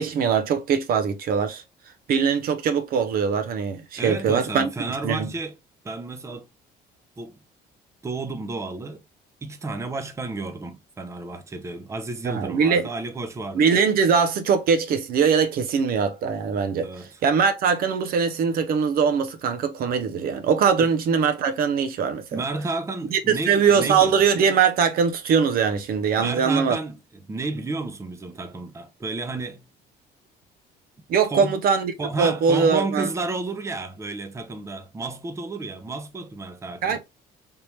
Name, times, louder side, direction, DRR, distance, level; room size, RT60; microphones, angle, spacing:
voice 1, 0.0-1.6 2.1-4.7 5.0-5.3 12.2-12.9 13.6-16.9 17.2-22.4 23.1-26.8 31.1-33.1 36.8-37.0, right 6 dB, 60° right, 0.6 m, -21 dB
voice 2, 4.0-5.5 5.8-6.5 7.2-7.4 8.0-9.0 9.4-13.7 16.8-17.2 20.8-20.9 22.3-24.2 26.2-27.0 27.3-29.7 31.3-31.5 32.0-37.0, right 3 dB, 15° right, 0.6 m, -31 dB
3.5 x 2.8 x 3.1 m
cardioid pair, 110°, 17 cm